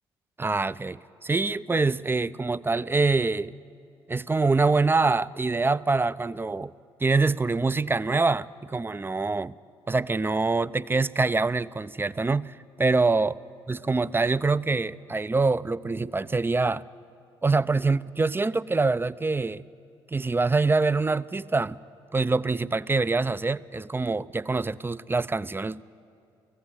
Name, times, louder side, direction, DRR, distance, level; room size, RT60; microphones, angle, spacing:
voice 1, 0.4-3.5 4.1-6.7 7.0-9.5 9.9-13.4 13.7-16.8 17.4-19.6 20.1-21.8 22.1-25.8, right 3 dB, 20° right, 17 dB, 0.5 m, -25 dB
18.5 x 15.0 x 9.9 m, 2.4 s
hypercardioid pair, 45°, 12 cm